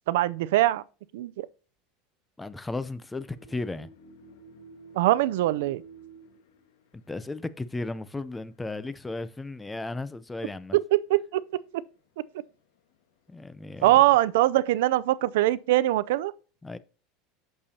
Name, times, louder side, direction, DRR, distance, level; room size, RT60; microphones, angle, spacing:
voice 1, 0.1-0.8 1.1-1.5 4.9-5.8 10.7-11.4 11.7-11.8 13.8-16.3, right 15 dB, 85° right, 0.4 m, -22 dB
voice 2, 2.4-3.9 6.9-10.8 13.3-14.0 16.6-16.8, left 2 dB, 10° left, 0.5 m, -35 dB
sound 1, 3.1-8.6 9.0-9.1 9.5-9.6 10.9-11.1 11.4-11.6 12.5-12.9 13.4-15.7, right 4 dB, 90° left, 1.6 m, -52 dB
8.5 x 6.7 x 2.8 m
supercardioid pair, 155°, 0 cm